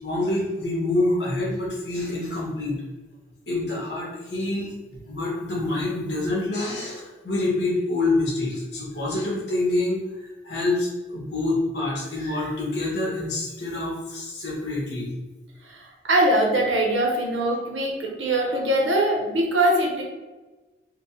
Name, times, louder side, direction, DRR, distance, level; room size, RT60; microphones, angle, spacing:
voice 1, 0.0-2.8 3.5-4.7 5.1-15.1, left 2 dB, 60° left, -5 dB, 1.3 m, -26 dB
voice 2, 15.6-20.0, right 1 dB, 85° right, 0 dB, 0.9 m, -22 dB
4.5 x 2.3 x 2.7 m, 1.2 s
head